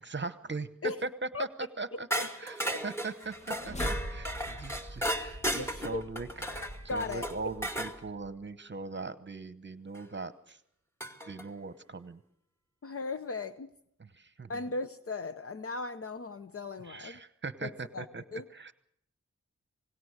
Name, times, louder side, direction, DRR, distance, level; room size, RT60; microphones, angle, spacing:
voice 1, 0.0-2.1 2.4-3.8 4.1-6.3 6.6-10.6 11.3-12.2 14.0-14.6 16.8-18.7, right 3 dB, 40° right, 13 dB, 1.0 m, -40 dB
voice 2, 1.9-2.2 5.6-6.0 6.9-7.5 12.8-13.7 14.5-17.2 17.6-18.1 18.3-18.4, left 3 dB, 50° left, 11 dB, 0.8 m, -37 dB
sound 1, 2.1-8.0 9.9-10.0 11.0-11.5, equal, 10° left, 2.3 m, -35 dB
sound 2, 3.1-8.4, equal, 25° left, 1.4 m, -42 dB
27.0 x 18.5 x 6.5 m, 0.71 s
wide cardioid pair, 90°, 29 cm